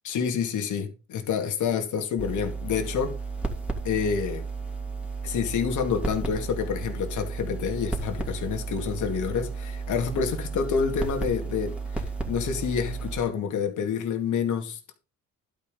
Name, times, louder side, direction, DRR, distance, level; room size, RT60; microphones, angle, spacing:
voice 1, 0.0-3.1 3.8-4.4 5.2-11.7 12.3-15.0, left 6 dB, 75° left, 2.5 m, -28 dB
sound 1, 2.2-13.2, right 4 dB, 5° right, 2.8 m, -33 dB
11.5 x 5.5 x 5.4 m
cardioid pair, 90°, 30 cm